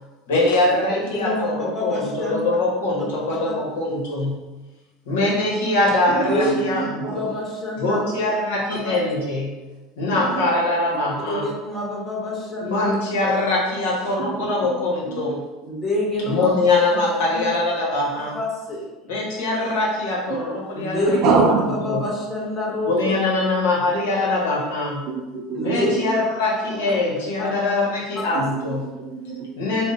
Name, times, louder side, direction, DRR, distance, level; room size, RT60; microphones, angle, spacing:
voice 1, 0.3-4.4 5.0-7.3 7.8-9.5 10.0-11.5 12.6-15.4 16.2-18.4 19.1-21.2 21.9-22.0 22.8-25.0 25.6-28.8 29.6-29.9, left 2 dB, 85° left, -3 dB, 1.1 m, -22 dB
voice 2, 1.0-2.4 3.0-3.1 3.4-3.5 6.1-8.1 8.7-9.0 11.3-13.0 15.6-16.5 16.9-17.0 17.3-17.4 18.3-19.1 20.7-23.1 25.5-25.9 27.4-27.5 28.2-28.4, left 1 dB, 25° left, -3 dB, 1.2 m, -27 dB
voice 3, 6.3-7.1 10.3-10.4 14.3-14.7 15.1-15.3 21.1-21.8 25.1-26.1 28.5-29.4, right 4 dB, 60° right, 3 dB, 0.6 m, -25 dB
3.5 x 2.1 x 3.9 m, 1.1 s
supercardioid pair, 100°, 0 cm